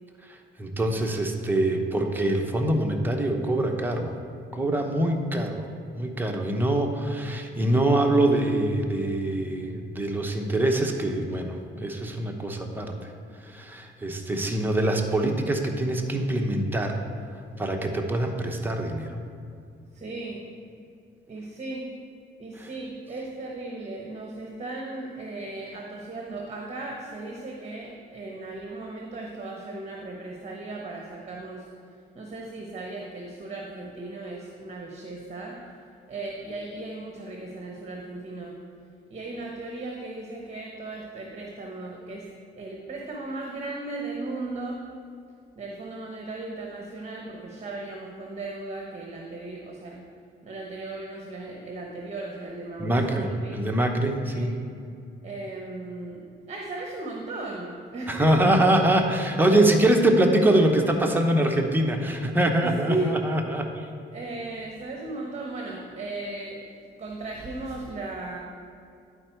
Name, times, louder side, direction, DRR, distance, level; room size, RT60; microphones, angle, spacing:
voice 1, 0.3-4.1 4.5-5.7 5.9-12.9 13.5-17.0 17.6-19.1 22.6-22.7 52.8-54.5 58.1-63.9, right 1 dB, 10° right, 2 dB, 0.8 m, -24 dB
voice 2, 19.9-20.4 21.3-21.8 22.4-31.7 32.1-35.6 36.1-38.5 39.1-42.2 42.6-44.8 45.6-50.0 50.4-53.6 54.3-54.5 55.2-58.1 58.4-58.6 62.6-63.1 64.1-66.6 67.0-68.4, right 2 dB, 35° right, -1 dB, 1.1 m, -36 dB
10.5 x 4.5 x 4.5 m, 2.5 s
cardioid pair, 90°, 20 cm